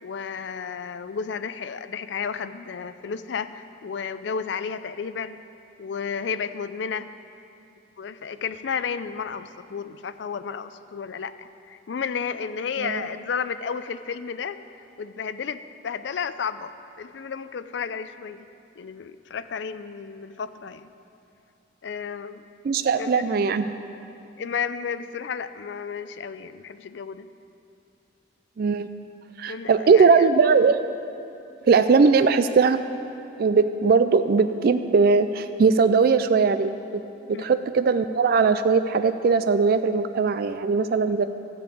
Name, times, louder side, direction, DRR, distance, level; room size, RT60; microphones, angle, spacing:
voice 1, 0.0-5.4 5.8-7.1 8.0-18.5 18.8-20.9 21.8-22.4 23.0-23.3 24.4-27.3 29.5-30.3 37.3-37.6, left 6 dB, 65° left, 12 dB, 0.4 m, -32 dB
voice 2, 22.6-23.8 28.6-28.9 29.4-30.8 31.7-32.8 33.4-36.7 37.3-41.2, right 5 dB, 55° right, 10 dB, 0.3 m, -20 dB
13.0 x 5.3 x 8.4 m, 2.7 s
head